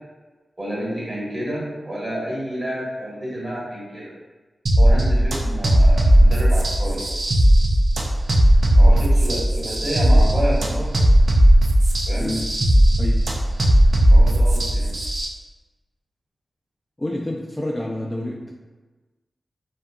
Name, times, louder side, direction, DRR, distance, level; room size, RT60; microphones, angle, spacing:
voice 1, 0.6-4.1 4.8-7.0 8.7-10.9 12.1-12.3 14.1-14.9, equal, 35° right, -7 dB, 1.3 m, -29 dB
sound 1, 4.7-15.3, right 1 dB, 65° right, 0.4 m, -16 dB
voice 2, 12.2-12.5 13.0-13.2 17.0-18.5, left 1 dB, 15° left, -3 dB, 0.4 m, -28 dB
2.7 x 2.2 x 2.3 m, 1.2 s
cardioid pair, 50°, 0 cm